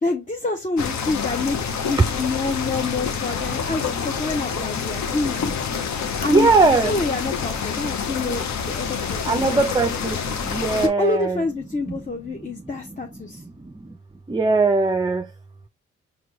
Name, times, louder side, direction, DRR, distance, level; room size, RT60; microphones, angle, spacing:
voice 1, 0.0-5.6 6.0-10.0 10.8-13.4, left 3 dB, 25° left, 0.8 m, -27 dB
sound 1, 0.8-10.9, left 6 dB, 65° left, 0.8 m, -27 dB
voice 2, 6.3-6.9 9.2-10.2 10.5-11.4 14.3-15.3, right 3 dB, 15° right, 0.4 m, -19 dB
4.4 x 2.4 x 3.0 m
supercardioid pair, 50°, 30 cm